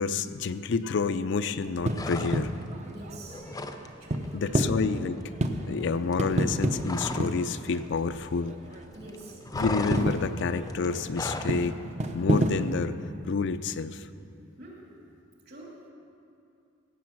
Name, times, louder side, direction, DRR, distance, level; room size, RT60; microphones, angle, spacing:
voice 1, 0.0-2.5 4.3-5.2 5.7-8.6 9.5-11.8 12.1-13.0 13.3-14.1, left 4 dB, 65° left, 12 dB, 0.4 m, -29 dB
sound 1, 1.7-9.1 9.4-12.8, right 1 dB, 35° right, 0.7 m, -31 dB
sound 2, 1.9-2.7 3.0-3.9 4.1-4.3 4.6-7.4 7.7-8.8 9.0-11.6, left 2 dB, 20° left, 0.6 m, -36 dB
voice 2, 2.9-3.4 4.0-4.2 8.9-9.4 14.6-14.9 15.4-15.8, right 2 dB, 55° right, -3 dB, 2.9 m, -46 dB
16.5 x 7.7 x 6.0 m, 2.6 s
head